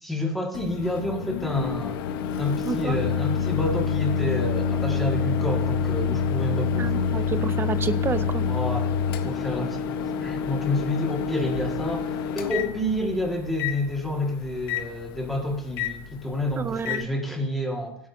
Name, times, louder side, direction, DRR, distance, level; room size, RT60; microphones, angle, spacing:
voice 1, 0.0-2.0 2.4-7.1 8.4-8.9 9.2-18.0, left 1 dB, ahead, -1 dB, 1.9 m, -29 dB
Microwave oven, 0.5-17.0, left 6 dB, 80° left, 0.8 m, -27 dB
voice 2, 2.6-3.0 6.8-8.4 16.6-17.1, right 5 dB, 20° right, 13 dB, 0.5 m, -29 dB
16.0 x 8.6 x 2.7 m, 0.73 s
supercardioid pair, 135°, 12 cm